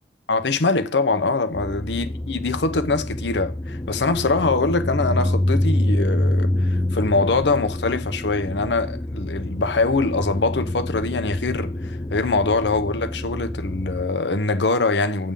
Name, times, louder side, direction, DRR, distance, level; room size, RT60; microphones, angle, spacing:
voice 1, 0.3-15.3, left 3 dB, 80° left, 0.8 m, -23 dB
sound 1, 1.5-14.1, left 1 dB, 20° left, 0.4 m, -26 dB
8.7 x 3.7 x 6.9 m
head